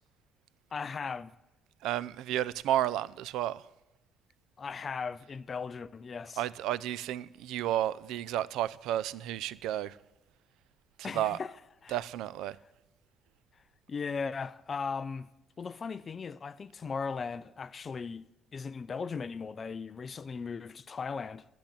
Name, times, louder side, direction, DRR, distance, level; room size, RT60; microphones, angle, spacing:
voice 1, 0.7-1.3 4.6-6.4 11.0-11.5 11.8-12.0 13.9-15.3 15.6-21.4, left 5 dB, 30° left, 0.4 m, -37 dB
voice 2, 1.8-3.6 6.4-10.0 11.0-11.4 11.9-12.6, right 12 dB, 90° right, 0.4 m, -32 dB
10.5 x 10.5 x 8.7 m
cardioid pair, 160°, 0 cm